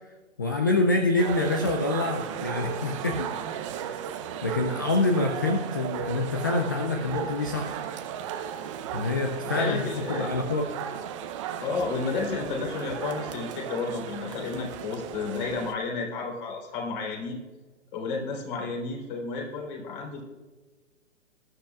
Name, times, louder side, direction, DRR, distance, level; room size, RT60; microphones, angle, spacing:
voice 1, 0.4-3.3 4.4-7.8 8.9-10.7, left 2 dB, 20° left, 5 dB, 0.3 m, -26 dB
sound 1, 1.2-15.7, right 9 dB, 25° right, 0.6 m, -35 dB
voice 2, 9.5-10.3 11.6-17.4 17.9-20.2, left 4 dB, 40° left, 0 dB, 3.7 m, -32 dB
19.0 x 12.0 x 2.4 m, 1.3 s
figure-of-eight pair, 130°, 38 cm